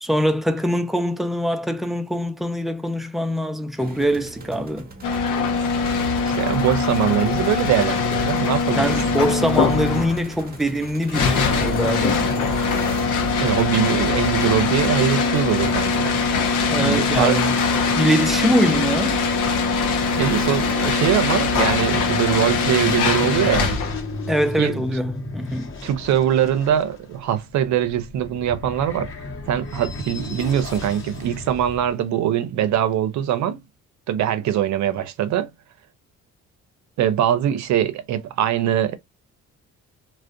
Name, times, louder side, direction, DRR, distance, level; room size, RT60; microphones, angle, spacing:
voice 1, 0.0-4.9 8.8-12.6 16.6-17.5 17.9-19.2 24.3-25.7, equal, ahead, 0.4 m, -23 dB
sound 1, 3.8-23.6, right 3 dB, 30° right, 0.7 m, -41 dB
sound 2, 5.0-24.1, left 4 dB, 85° left, 0.6 m, -22 dB
voice 2, 6.3-9.0 13.4-16.4 16.7-17.4 20.2-23.8 24.6-24.8 25.8-29.1 29.5-33.6 34.1-35.5 37.0-39.0, right 10 dB, 70° right, 0.5 m, -22 dB
sound 3, 21.5-31.9, left 3 dB, 40° left, 0.9 m, -34 dB
2.4 x 2.1 x 2.4 m
cardioid pair, 90°, 30 cm